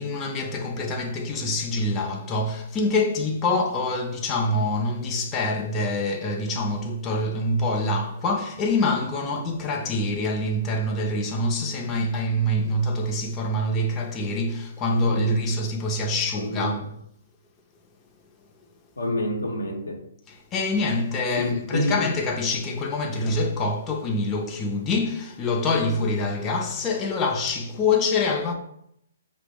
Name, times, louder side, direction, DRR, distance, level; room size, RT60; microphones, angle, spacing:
voice 1, 0.0-16.8 20.3-28.5, left 2 dB, 20° left, 0.4 m, -25 dB
voice 2, 14.9-15.3 16.3-16.8 19.0-20.0 21.4-22.0, equal, 90° left, 0.7 m, -28 dB
4.5 x 2.0 x 3.3 m
hypercardioid pair, 145°, 0 cm